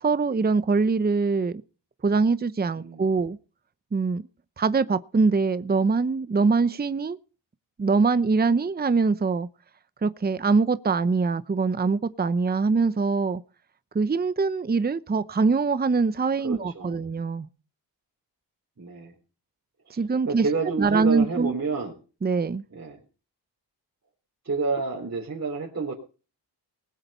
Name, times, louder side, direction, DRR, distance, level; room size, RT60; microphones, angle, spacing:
voice 1, 0.0-1.6 2.0-3.4 3.9-4.3 4.6-7.2 7.8-9.5 10.0-13.4 13.9-17.5 19.9-21.5 22.2-22.6, right 4 dB, 20° right, 0.8 m, -23 dB
voice 2, 16.4-17.0 18.8-19.1 19.9-20.0 20.3-22.0 22.7-23.0 24.4-25.9, right 4 dB, 35° right, 3.7 m, -29 dB
20.0 x 7.9 x 5.5 m
cardioid pair, 65°, 44 cm